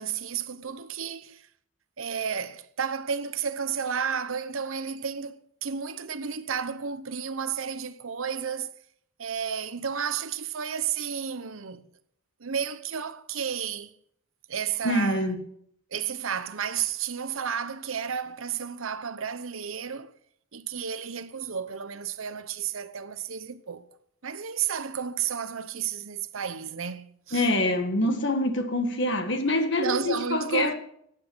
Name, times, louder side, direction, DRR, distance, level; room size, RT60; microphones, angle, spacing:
voice 1, 0.0-1.5 2.0-8.7 9.2-11.8 12.4-13.9 14.5-15.3 15.9-20.1 20.5-23.8 24.2-27.5 29.8-30.7, right 7 dB, 85° right, 0.9 m, -32 dB
voice 2, 14.8-15.4 27.3-30.7, left 1 dB, 60° left, 1.7 m, -25 dB
14.5 x 9.4 x 6.2 m
head